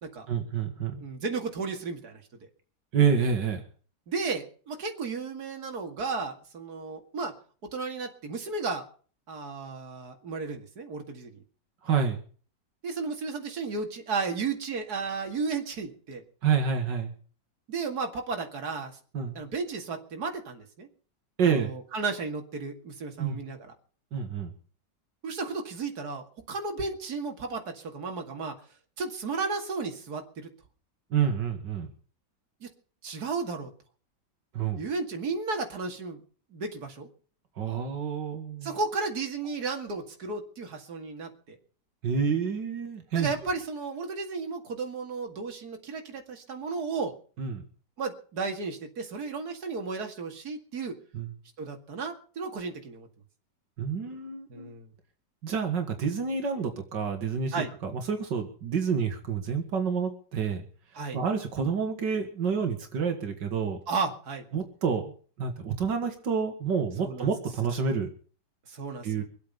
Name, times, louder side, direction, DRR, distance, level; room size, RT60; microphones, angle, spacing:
voice 1, 0.3-1.0 2.9-3.6 11.8-12.2 16.4-17.1 19.1-19.4 21.4-21.7 23.2-23.4 24.1-24.5 31.1-31.9 34.5-34.8 37.6-38.8 42.0-43.3 47.4-47.6 51.1-51.3 53.8-54.7 55.4-57.6 57.8-60.6 61.1-63.8 64.5-68.1 69.0-69.2, right 6 dB, 85° right, 5 dB, 2.4 m, -28 dB
voice 2, 1.0-2.2 4.1-7.3 7.7-8.8 9.3-11.3 12.8-16.2 17.7-18.9 19.4-20.9 21.4-23.6 25.2-28.5 29.0-30.5 32.6-32.7 33.0-33.7 34.8-36.2 36.5-37.1 38.6-41.6 43.1-47.1 48.0-51.0 51.6-53.1 54.5-54.9 57.5-57.7 60.9-61.2 63.9-64.4 67.0-67.3 68.7-69.2, right 4 dB, 60° right, 4 dB, 2.7 m, -33 dB
24.5 x 8.5 x 5.5 m, 0.42 s
omnidirectional pair, 1.9 m